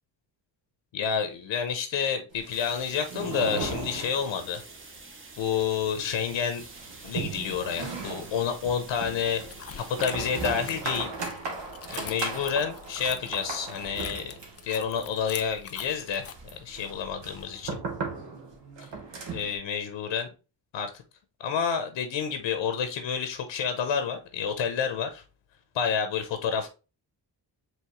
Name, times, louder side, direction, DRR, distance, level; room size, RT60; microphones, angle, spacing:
voice 1, 0.9-4.6 5.4-6.6 7.0-9.4 10.0-11.1 11.9-14.3 14.6-16.3 16.5-17.8 19.3-20.3 20.7-20.9 21.4-25.2 25.7-26.7, left 7 dB, 80° left, 0.8 m, -29 dB
sound 1, 2.3-4.7 5.0-5.1 5.4-5.5 5.9-19.6, right 4 dB, 70° right, 1.3 m, -37 dB
sound 2, 2.5-10.8, right 3 dB, 30° right, 0.9 m, -48 dB
sound 3, 9.5-16.3, left 8 dB, 35° left, 0.4 m, -43 dB
4.7 x 3.1 x 3.1 m
cardioid pair, 75°, 44 cm